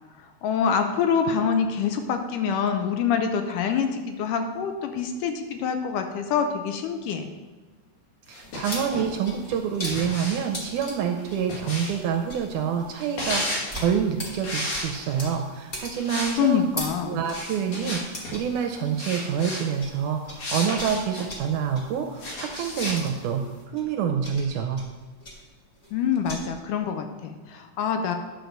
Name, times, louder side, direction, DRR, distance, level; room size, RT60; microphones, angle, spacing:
voice 1, 0.4-7.3 16.4-17.2 25.9-28.2, left 7 dB, 80° left, 6 dB, 2.1 m, -25 dB
sound 1, 8.3-9.1 9.8-12.1 12.9-13.7 14.4-15.3 15.9-16.4 16.6-16.8 17.3-18.3 19.0-19.6 20.4-21.3 22.2-23.0, left 1 dB, 60° left, 3.9 m, -32 dB
voice 2, 8.3-16.6 17.1-24.8, right 7 dB, 80° right, 4 dB, 1.9 m, -27 dB
sound 2, 8.4-20.0 20.2-26.4, left 1 dB, 45° left, 0.6 m, -40 dB
10.5 x 4.6 x 6.5 m, 1.3 s
omnidirectional pair, 4.0 m